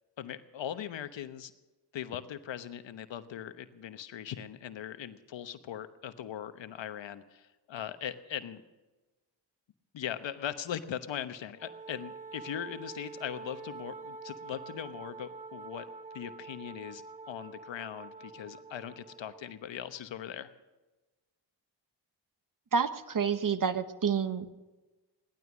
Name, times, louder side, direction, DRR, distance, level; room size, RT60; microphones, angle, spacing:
voice 1, 0.2-1.5 1.9-8.6 9.9-15.9 16.1-20.5, left 10 dB, 70° left, 11 dB, 1.1 m, -40 dB
Wind instrument woodwind instrument, 11.6-19.6, right 4 dB, 15° right, 1.4 m, -46 dB
voice 2, 22.7-24.5, right 6 dB, 45° right, 11 dB, 1.3 m, -29 dB
17.5 x 12.5 x 6.1 m, 1.1 s
supercardioid pair, 50°, 46 cm